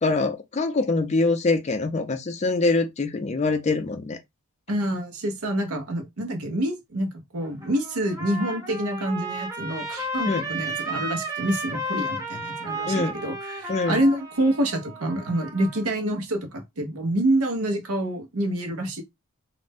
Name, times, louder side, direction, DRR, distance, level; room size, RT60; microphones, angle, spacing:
voice 1, 0.0-4.2 10.2-10.4 12.9-13.1 13.7-14.0, left 3 dB, 30° left, 0.4 m, -24 dB
voice 2, 4.7-19.0, right 1 dB, 85° right, 0.8 m, -27 dB
Trumpet, 7.4-15.9, right 1 dB, 15° right, 0.7 m, -33 dB
2.5 x 2.1 x 3.4 m
head